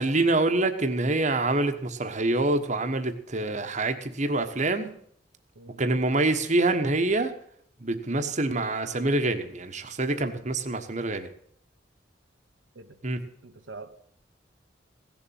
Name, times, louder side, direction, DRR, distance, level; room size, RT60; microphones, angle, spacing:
voice 1, 0.0-4.9 5.8-7.3 7.8-11.3 13.0-13.2, right 2 dB, 40° right, 1.3 m, -26 dB
voice 2, 5.6-6.0 12.7-12.9 13.4-13.9, right 3 dB, 80° right, 1.1 m, -44 dB
16.5 x 7.1 x 9.3 m
head